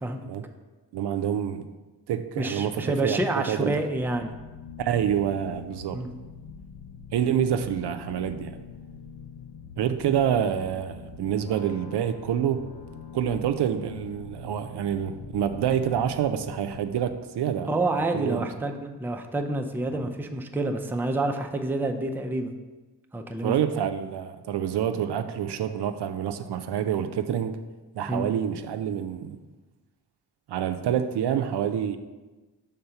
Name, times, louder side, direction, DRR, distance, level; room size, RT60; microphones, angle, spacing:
voice 1, 0.9-1.7 2.1-3.7 4.8-6.0 7.1-8.6 9.8-12.7 13.1-17.7 18.0-18.5 19.9-20.1 23.4-27.6 27.9-29.4 30.5-32.0, right 9 dB, 75° right, 8 dB, 0.5 m, -27 dB
voice 2, 2.4-4.3 5.9-6.1 17.7-22.5 23.1-23.5 28.1-28.3, right 2 dB, 5° right, 4 dB, 0.4 m, -28 dB
sound 1, 3.9-17.1, left 6 dB, 90° left, 0.7 m, -44 dB
5.5 x 3.7 x 5.7 m, 1.2 s
cardioid pair, 85°, 41 cm